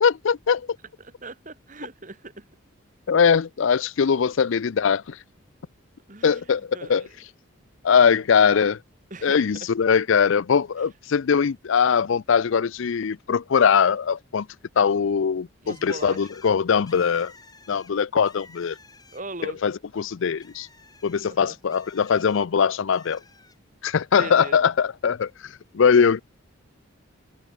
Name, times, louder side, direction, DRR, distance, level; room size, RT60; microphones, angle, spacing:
voice 1, 0.0-0.7 3.1-5.2 6.2-7.1 7.8-8.8 9.2-14.5 14.8-17.3 17.7-18.8 19.4-20.7 21.0-23.2 23.8-26.2, left 6 dB, 65° left, 0.4 m, -21 dB
voice 2, 1.0-2.5 6.1-6.4 6.7-7.1 9.1-9.5 15.6-16.3 19.1-19.6 21.2-21.6 24.2-24.6, right 2 dB, 35° right, 2.2 m, -39 dB
Bird, 15.7-19.5 19.9-22.5 22.9-23.6, left 4 dB, 20° left, 3.3 m, -52 dB
head